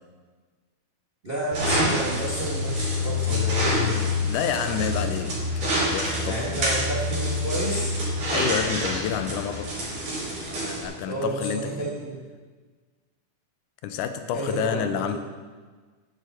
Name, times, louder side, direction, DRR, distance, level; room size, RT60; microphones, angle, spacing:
voice 1, 1.2-4.0 6.2-7.9 11.1-12.2 14.3-15.1, right 1 dB, 45° right, -4 dB, 0.7 m, -31 dB
sound 1, 1.5-10.9, left 1 dB, 65° right, 5.4 m, -26 dB
voice 2, 4.2-6.7 8.3-9.8 10.5-11.9 13.8-15.2, left 8 dB, 80° left, 9 dB, 2.1 m, -29 dB
11.0 x 10.5 x 4.2 m, 1.4 s
omnidirectional pair, 3.6 m